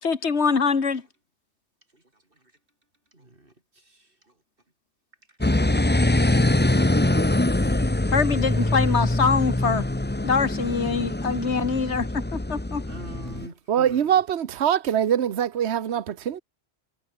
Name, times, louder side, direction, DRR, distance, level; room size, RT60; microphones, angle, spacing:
voice 1, 0.0-1.0 8.1-9.9 10.2-12.8, left 5 dB, 65° left, 2.2 m, -24 dB
voice 2, 3.1-4.3 5.3-5.8 6.6-7.8 12.8-14.2, right 2 dB, 50° right, 4.3 m, -46 dB
sound 1, 5.4-13.5, left 1 dB, 10° left, 0.9 m, -23 dB
voice 3, 13.7-16.4, right 9 dB, 65° right, 1.2 m, -23 dB
omnidirectional pair, 1.2 m